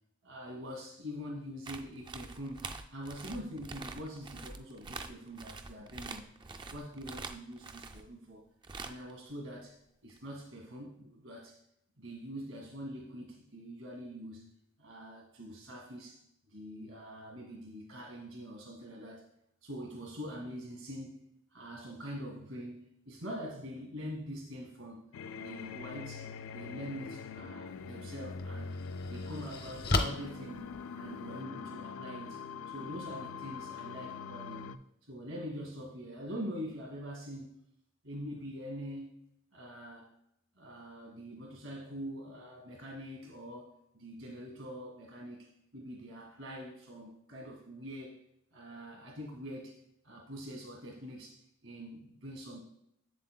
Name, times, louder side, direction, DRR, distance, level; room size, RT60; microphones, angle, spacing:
voice 1, 0.2-6.3 6.7-8.4 8.8-9.8 10.0-11.6 12.0-16.2 16.5-19.3 19.6-21.2 21.5-25.0 25.3-28.8 29.1-34.7 35.0-37.5 38.0-39.1 39.5-40.1 40.6-48.2 48.5-49.7 50.0-52.6, equal, 85° right, 0 dB, 2.0 m, -44 dB
sound 1, 1.6-8.1 8.6-9.1 10.2-10.3, right 4 dB, 20° right, 0.3 m, -45 dB
sound 2, 25.1-34.8, left 5 dB, 75° left, 0.3 m, -43 dB
sound 3, 27.7-27.8 28.4-31.4, left 2 dB, 50° left, 0.7 m, -35 dB
7.5 x 7.4 x 2.2 m, 0.79 s
head